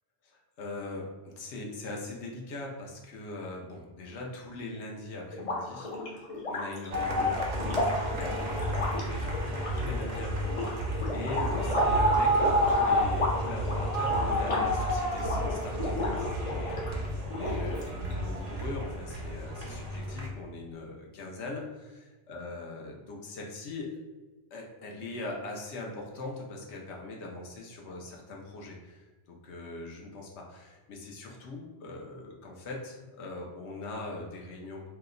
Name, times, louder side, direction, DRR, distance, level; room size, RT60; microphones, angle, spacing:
voice 1, 0.2-6.2 6.5-7.4 8.0-8.6 9.0-15.9 16.2-24.0 24.5-34.9, left 2 dB, 80° left, 0 dB, 0.9 m, -41 dB
sound 1, 5.3-16.9 17.3-18.1, left 2 dB, 45° left, 0.5 m, -33 dB
sound 2, 6.9-20.3, equal, 55° right, 0.4 m, -30 dB
2.8 x 2.1 x 3.7 m, 1.2 s
omnidirectional pair, 1.1 m